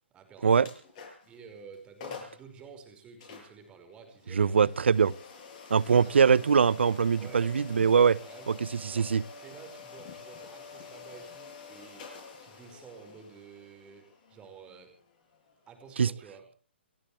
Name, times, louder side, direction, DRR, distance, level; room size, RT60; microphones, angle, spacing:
voice 1, 0.1-0.7 1.2-4.7 5.7-6.5 7.2-9.1 9.4-14.9 15.7-16.5, right 6 dB, 15° right, 5.3 m, -50 dB
sound 1, 0.6-1.4 1.7-1.8 2.0-2.4 3.2-15.9, left 5 dB, 35° left, 7.5 m, -48 dB
voice 2, 4.3-5.1 5.7-8.2 8.7-9.2 16.0-16.1, right 6 dB, 75° right, 0.7 m, -22 dB
29.5 x 14.0 x 3.3 m
hypercardioid pair, 140°, 6 cm